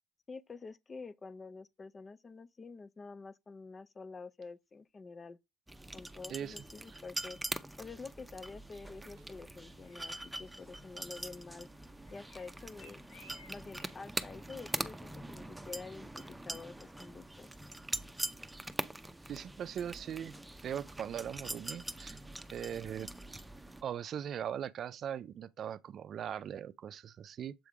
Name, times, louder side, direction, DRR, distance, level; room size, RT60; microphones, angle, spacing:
voice 1, 0.3-5.4 5.9-11.7 12.1-13.0 13.5-17.5, left 4 dB, 35° left, 0.6 m, -48 dB
sound 1, 5.7-23.8, right 1 dB, 10° right, 0.7 m, -43 dB
sound 2, 8.7-14.8, left 3 dB, 85° left, 4.1 m, -63 dB
voice 2, 19.3-20.4 20.6-22.2 22.5-23.1 23.8-27.5, right 9 dB, 55° right, 0.5 m, -40 dB
7.6 x 3.6 x 4.7 m
supercardioid pair, 70°, 0 cm